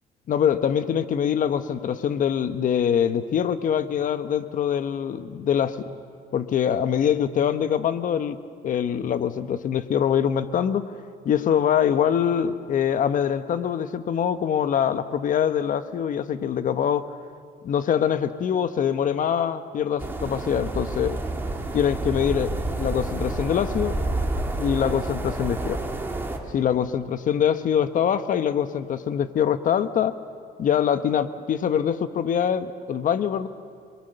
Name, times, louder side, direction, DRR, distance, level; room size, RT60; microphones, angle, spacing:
voice 1, 0.3-5.8 6.3-8.4 8.6-10.8 11.2-17.1 17.6-21.2 21.7-24.0 24.6-25.8 26.5-30.1 30.6-33.5, left 8 dB, 50° left, 12 dB, 1.1 m, -24 dB
sound 1, 20.0-26.4, right 2 dB, 15° right, 2.7 m, -29 dB
30.0 x 22.0 x 6.8 m, 2.2 s
cardioid pair, 110°, 17 cm